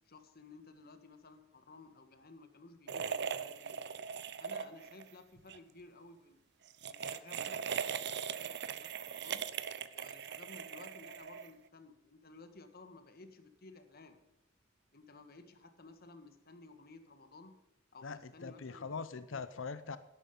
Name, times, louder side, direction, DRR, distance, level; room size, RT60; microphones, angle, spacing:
voice 1, 0.0-3.8 4.4-6.4 6.9-9.5 9.9-14.2 14.9-17.6 17.9-19.0 19.3-19.4, left 3 dB, 55° left, 9 dB, 1.6 m, -56 dB
sound 1, 2.9-5.1 5.4-5.6 6.7-11.7, right 7 dB, 60° right, 0.7 m, -40 dB
voice 2, 18.0-20.0, left 5 dB, 90° left, 13 dB, 0.7 m, -42 dB
12.5 x 12.0 x 5.4 m, 0.89 s
head